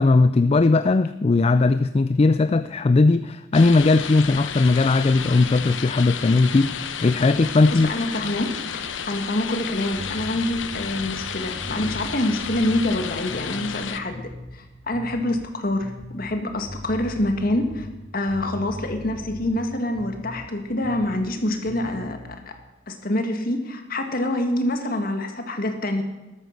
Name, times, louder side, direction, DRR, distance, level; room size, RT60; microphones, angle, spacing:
voice 1, 0.0-7.9, left 3 dB, 35° left, 13 dB, 0.4 m, -18 dB
sound 1, 3.5-14.0, left 7 dB, 85° left, 1.0 m, -32 dB
voice 2, 7.7-8.5 9.1-14.2 14.5-17.9 18.1-22.2 22.9-26.0, left 1 dB, 50° left, 6 dB, 2.0 m, -26 dB
sound 2, 9.9-14.6 14.9-15.5 15.8-20.5 20.8-21.4 21.6-22.3, left 1 dB, 35° right, 4.4 m, -39 dB
13.5 x 12.5 x 6.6 m, 1.0 s
head